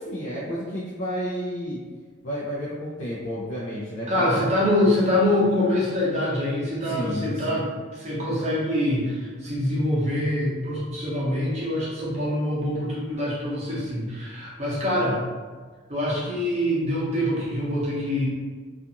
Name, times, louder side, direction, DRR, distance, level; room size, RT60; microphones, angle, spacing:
voice 1, 0.0-1.8 2.2-4.5 6.8-7.7, equal, 75° left, -7 dB, 0.5 m, -31 dB
voice 2, 4.1-15.2 15.9-18.3, left 1 dB, 35° right, -6 dB, 0.7 m, -25 dB
2.4 x 2.4 x 2.8 m, 1.5 s
head